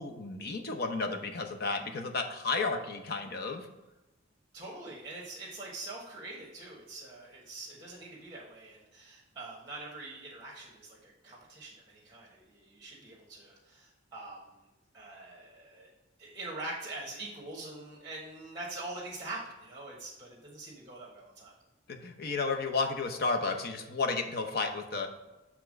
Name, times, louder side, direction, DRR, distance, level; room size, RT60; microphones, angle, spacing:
voice 1, 0.0-3.7 21.9-25.1, left 4 dB, 55° left, 5 dB, 0.8 m, -32 dB
voice 2, 4.5-14.5 14.9-15.9 16.2-21.5, right 2 dB, 20° right, -4 dB, 1.3 m, -44 dB
6.9 x 3.7 x 6.3 m, 1.0 s
head